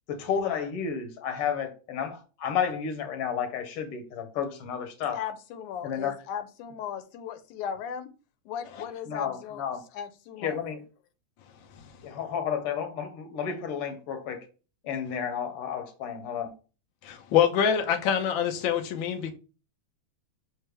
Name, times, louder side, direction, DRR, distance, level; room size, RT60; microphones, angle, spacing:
voice 1, 0.1-5.2 5.8-6.1 9.1-9.8 10.4-10.8 12.0-14.5 14.8-16.5, left 7 dB, 60° left, 1.8 m, -31 dB
voice 2, 5.1-8.1 8.5-9.6 9.9-10.6, left 8 dB, 90° left, 2.2 m, -37 dB
voice 3, 17.0-19.3, left 8 dB, 75° left, 1.1 m, -25 dB
6.6 x 4.3 x 3.3 m
omnidirectional pair, 3.4 m